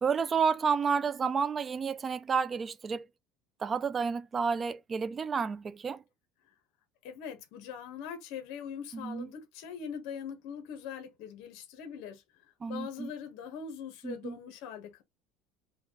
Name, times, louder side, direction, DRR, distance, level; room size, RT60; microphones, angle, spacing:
voice 1, 0.0-3.1 3.6-6.0 8.9-9.3 12.6-13.1 14.0-14.4, right 5 dB, 25° right, 0.4 m, -30 dB
voice 2, 7.0-12.2 12.7-15.0, left 7 dB, 65° left, 1.2 m, -42 dB
4.6 x 2.4 x 3.8 m
cardioid pair, 145°, 0 cm